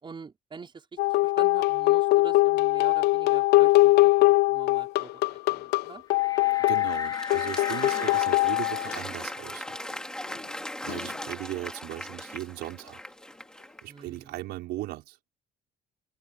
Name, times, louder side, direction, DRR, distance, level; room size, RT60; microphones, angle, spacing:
voice 1, 0.0-6.0 7.9-8.1 13.9-14.4, right 5 dB, 30° right, 4.8 m, -46 dB
sound 1, 1.0-9.0 10.9-11.1, left 19 dB, 75° left, 0.4 m, -22 dB
sound 2, 6.1-11.3 11.7-11.8 12.1-13.8, left 4 dB, 25° left, 4.4 m, -40 dB
Applause, 6.4-14.0, left 1 dB, 5° left, 2.6 m, -39 dB
voice 2, 6.7-9.8 10.8-13.0 13.8-15.2, right 16 dB, 85° right, 4.9 m, -37 dB
open air
cardioid pair, 110°, 17 cm